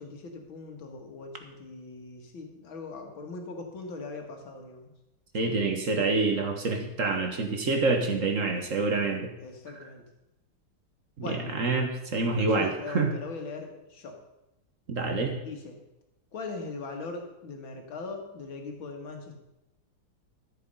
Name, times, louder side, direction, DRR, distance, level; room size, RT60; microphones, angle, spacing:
voice 1, 0.0-4.9 9.4-10.0 11.2-11.4 12.4-14.1 15.4-15.8 16.3-19.4, left 3 dB, 70° left, 3 dB, 2.6 m, -40 dB
voice 2, 5.3-9.3 11.2-13.1 14.9-15.4, right 3 dB, 40° right, 4 dB, 1.5 m, -27 dB
13.0 x 8.2 x 5.5 m, 0.92 s
omnidirectional pair, 2.3 m